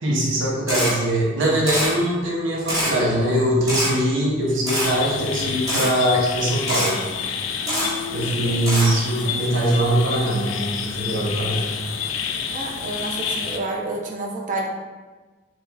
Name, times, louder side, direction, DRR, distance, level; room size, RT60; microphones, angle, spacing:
voice 1, 0.0-7.0 8.1-11.6, right 1 dB, 80° right, -4 dB, 0.9 m, -22 dB
Camera, 0.7-0.9 1.7-1.9 2.7-2.9 3.7-3.9 4.7-4.9 5.7-5.9 6.7-6.9 7.7-7.9 8.7-8.9, equal, 20° right, 1.3 m, -23 dB
sound 1, 4.8-13.6, left 7 dB, 90° left, 0.3 m, -29 dB
voice 2, 7.6-8.8 9.2-9.3 12.5-14.7, right 1 dB, 40° right, 1 dB, 0.4 m, -30 dB
4.1 x 3.2 x 2.3 m, 1.3 s
head